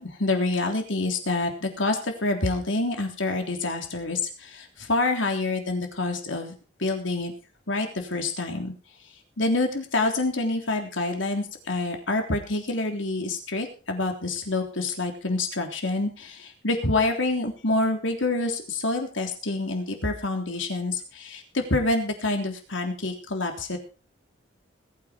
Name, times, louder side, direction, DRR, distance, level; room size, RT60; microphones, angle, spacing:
voice 1, 0.0-6.5 6.8-7.3 7.7-8.7 9.4-23.8, left 2 dB, 90° left, 4 dB, 3.5 m, -27 dB
21.0 x 9.1 x 4.5 m, 0.37 s
head